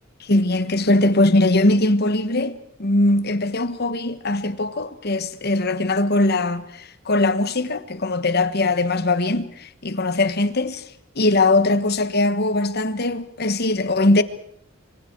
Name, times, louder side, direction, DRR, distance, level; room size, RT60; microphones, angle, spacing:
voice 1, 0.3-10.8 11.2-14.2, left 2 dB, 50° left, 1.4 m, -20 dB
26.0 x 25.5 x 4.7 m
head